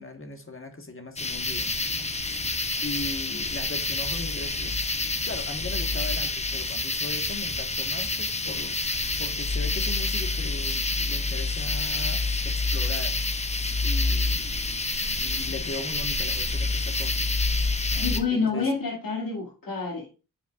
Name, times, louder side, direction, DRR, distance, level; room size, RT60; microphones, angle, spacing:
voice 1, 0.0-1.9 2.8-4.8 5.2-8.8 9.2-13.2 13.8-14.8 15.2-17.1 17.9-18.7, left 2 dB, 40° left, 1.4 m, -38 dB
sound 1, 1.2-18.2, left 3 dB, 20° left, 0.7 m, -28 dB
sound 2, 1.4-10.7, right 2 dB, 90° right, 1.3 m, -47 dB
voice 2, 18.0-20.1, left 4 dB, 85° left, 2.3 m, -28 dB
8.8 x 5.2 x 2.4 m
cardioid pair, 60°, 34 cm